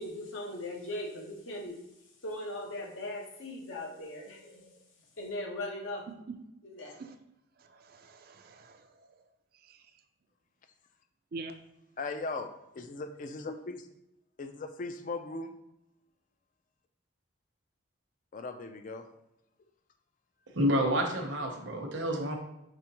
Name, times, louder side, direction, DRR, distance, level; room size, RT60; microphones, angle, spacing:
voice 1, 0.0-1.8 2.2-4.7 5.2-6.1 6.6-6.9, left 1 dB, 80° left, 1 dB, 0.9 m, -39 dB
voice 2, 6.8-7.2 7.6-9.2 9.6-9.9 11.3-11.5, right 3 dB, 45° right, 7 dB, 0.4 m, -46 dB
voice 3, 12.0-13.9 14.4-15.5 18.3-19.1, left 3 dB, 40° left, 8 dB, 0.3 m, -38 dB
voice 4, 20.5-22.4, equal, 65° right, 2 dB, 0.8 m, -29 dB
4.9 x 3.3 x 2.9 m, 0.86 s
head